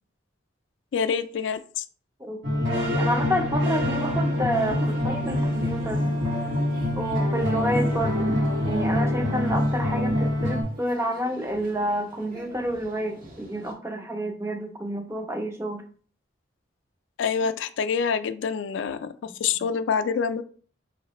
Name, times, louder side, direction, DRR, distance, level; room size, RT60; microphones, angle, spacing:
voice 1, 0.9-1.8 17.2-20.4, left 6 dB, 75° left, 11 dB, 0.3 m, -26 dB
voice 2, 2.2-6.1 7.0-15.8, equal, 15° right, 5 dB, 0.4 m, -29 dB
sound 1, 2.4-10.6, left 1 dB, 80° right, 2.1 m, -25 dB
sound 2, 3.7-13.7, right 1 dB, 45° right, 1.3 m, -40 dB
4.9 x 3.1 x 2.9 m, 0.43 s
head